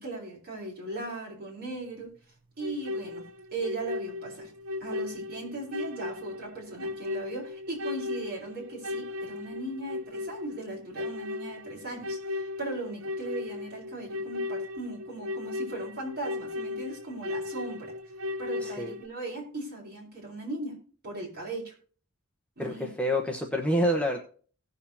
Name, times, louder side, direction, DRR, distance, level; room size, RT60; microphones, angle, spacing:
voice 1, 0.0-2.1 2.6-3.2 3.5-4.5 4.8-17.9 18.4-20.8 21.0-21.7 22.6-22.9, right 2 dB, 45° right, -2 dB, 4.8 m, -38 dB
sound 1, 2.6-19.1, left 3 dB, 65° right, 0.9 m, -36 dB
voice 2, 18.6-18.9 22.6-24.2, equal, 5° left, 1 dB, 1.0 m, -27 dB
18.0 x 6.7 x 2.8 m, 0.41 s
head